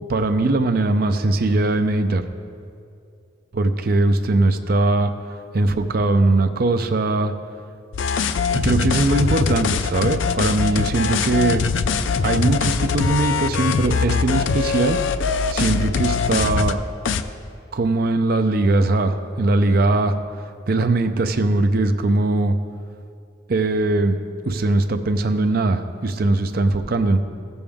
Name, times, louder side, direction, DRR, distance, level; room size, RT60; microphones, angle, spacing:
voice 1, 0.1-2.2 3.5-5.1 5.5-7.3 8.5-11.6 12.2-15.0 15.5-16.8 17.7-20.2 20.7-22.6 23.5-24.2 24.5-27.2, right 2 dB, 50° right, 8 dB, 0.5 m, -20 dB
sound 1, 7.9-16.7 17.1-17.2, left 5 dB, 70° left, 0.4 m, -22 dB
15.5 x 7.0 x 3.6 m, 2.3 s
head